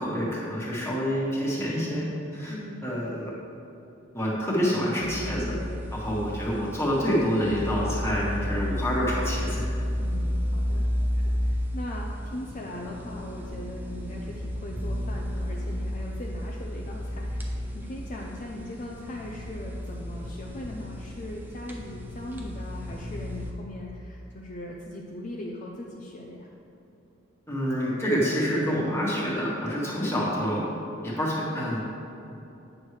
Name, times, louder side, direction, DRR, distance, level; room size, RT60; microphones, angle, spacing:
voice 1, 0.0-2.1 2.3-2.5 2.8-3.3 4.1-5.6 5.9-9.6 27.5-30.6 31.0-31.9, equal, 15° left, -6 dB, 1.5 m, -27 dB
voice 2, 2.5-2.8 6.0-6.3 10.0-10.8 11.1-26.5, left 1 dB, 40° left, -2 dB, 0.5 m, -40 dB
sound 1, 5.0-23.5, equal, 10° right, 0.6 m, -32 dB
8.5 x 6.3 x 3.2 m, 2.9 s
head